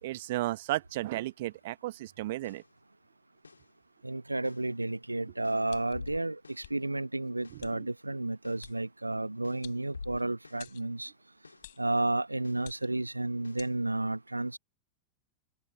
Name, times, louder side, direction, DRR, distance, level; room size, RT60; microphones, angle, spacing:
voice 1, 0.0-2.6 7.5-7.9, right 17 dB, 55° right, 1.1 m, -34 dB
sound 1, 2.2-2.8 3.4-3.8 4.4-4.8 5.4-6.8 7.4-7.8 8.4-8.8 9.4-10.8 11.4-11.8 12.4-12.8 13.4-13.8, left 4 dB, 75° left, 2.9 m, -49 dB
voice 2, 4.0-11.1 11.8-14.6, right 2 dB, 85° right, 1.0 m, -32 dB
sound 2, 5.7-6.1 6.6-6.7 7.6-7.7 8.6-8.8 9.6-10.2 10.6-10.9 11.6-11.9 12.6-13.0 13.6-13.7, left 14 dB, 55° left, 3.5 m, -51 dB
open air
figure-of-eight pair, 90°, 0 cm